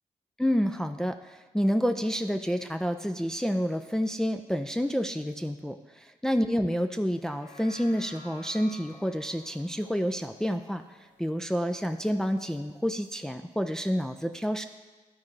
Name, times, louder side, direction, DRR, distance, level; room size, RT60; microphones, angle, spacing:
voice 1, 0.4-5.8 6.2-10.8 11.2-14.6, equal, 5° left, 6 dB, 0.4 m, -29 dB
sound 1, 7.2-11.7 12.1-12.2, left 2 dB, 75° left, 1.0 m, -53 dB
12.5 x 4.2 x 3.2 m, 1.3 s
supercardioid pair, 50°, 15 cm